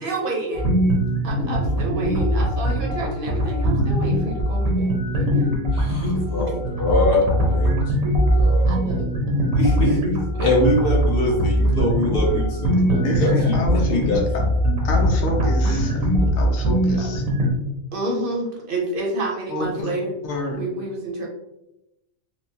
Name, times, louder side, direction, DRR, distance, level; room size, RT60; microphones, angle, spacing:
voice 1, 0.0-0.7 1.2-5.5 8.7-9.5 9.9-10.5 12.7-13.6 17.0-17.1 17.9-20.1 20.6-21.3, right 2 dB, 50° right, -2 dB, 0.8 m, -29 dB
sound 1, 0.5-17.5, equal, 80° right, 1.2 m, -21 dB
voice 2, 5.7-6.5 6.8-8.1 8.3-8.7 9.6-10.0 10.4-13.6 13.9-14.2, left 1 dB, 55° left, -2 dB, 0.8 m, -23 dB
voice 3, 13.0-14.1 14.8-16.1 16.3-17.2 19.5-19.9 20.2-20.6, left 2 dB, 80° left, 1 dB, 1.0 m, -28 dB
4.4 x 2.0 x 2.7 m, 0.89 s
omnidirectional pair, 1.4 m